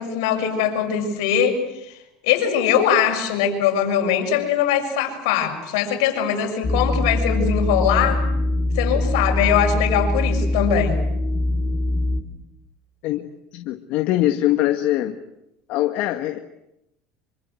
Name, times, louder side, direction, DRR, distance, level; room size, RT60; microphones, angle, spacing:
voice 1, 0.0-2.0 2.2-8.2 8.7-11.1, left 8 dB, 80° left, 4 dB, 6.5 m, -21 dB
sound 1, 6.6-12.2, left 1 dB, 25° left, 3.5 m, -22 dB
voice 2, 13.5-15.2 15.7-16.4, left 14 dB, 65° left, 7 dB, 1.7 m, -22 dB
26.5 x 25.0 x 7.9 m, 0.85 s
supercardioid pair, 105°, 3 cm